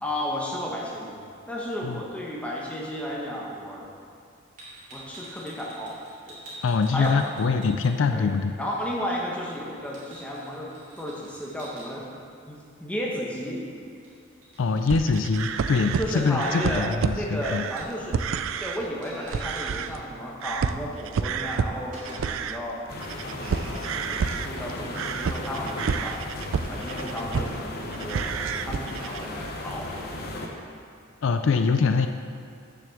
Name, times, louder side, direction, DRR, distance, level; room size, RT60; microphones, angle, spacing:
voice 1, 0.0-3.9 4.9-6.0 6.3-6.4 6.9-7.4 8.1-8.3 8.6-12.0 12.5-13.6 16.0-18.2 18.6-22.8 23.4-26.2 26.7-28.3 28.7-30.0, equal, 5° left, -3 dB, 1.2 m, -33 dB
sound 1, 4.6-8.3 8.6-11.9 14.0-14.2 14.4-16.6 17.8-18.1 18.5-18.6 18.8-19.9 21.0-21.1 21.5-22.6, right 1 dB, 40° right, 2.3 m, -47 dB
voice 2, 6.6-8.5 14.6-17.6 31.2-32.1, left 4 dB, 70° left, 7 dB, 0.4 m, -24 dB
sound 2, 14.9-18.8 19.2-20.1 20.4-27.6 27.9-29.3, right 6 dB, 75° right, 0.4 m, -30 dB
sound 3, 22.9-30.5, left 1 dB, 50° left, 0.9 m, -35 dB
7.0 x 6.0 x 7.0 m, 2.5 s
head